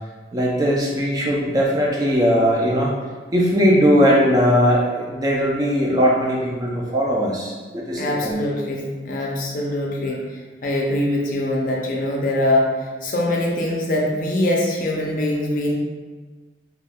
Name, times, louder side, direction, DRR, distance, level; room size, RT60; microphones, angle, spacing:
voice 1, 0.3-2.9 3.3-8.4, equal, 20° right, -3 dB, 0.3 m, -19 dB
voice 2, 7.9-12.7 13.0-15.7, left 1 dB, 45° left, -1 dB, 0.4 m, -23 dB
2.3 x 2.2 x 3.3 m, 1.4 s
head